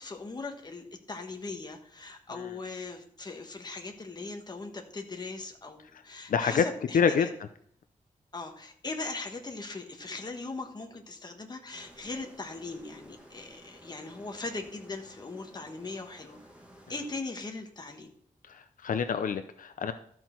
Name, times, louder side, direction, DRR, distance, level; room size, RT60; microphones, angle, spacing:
voice 1, 0.0-7.3 8.3-16.4 16.9-18.1, left 3 dB, 30° left, 4 dB, 1.2 m, -40 dB
voice 2, 6.3-6.6 6.9-7.3 18.5-19.9, left 6 dB, 80° left, 9 dB, 0.6 m, -27 dB
sound 1, 11.7-17.2, equal, 10° right, 2.0 m, -54 dB
13.0 x 6.1 x 4.5 m, 0.62 s
wide cardioid pair, 150°, 14 cm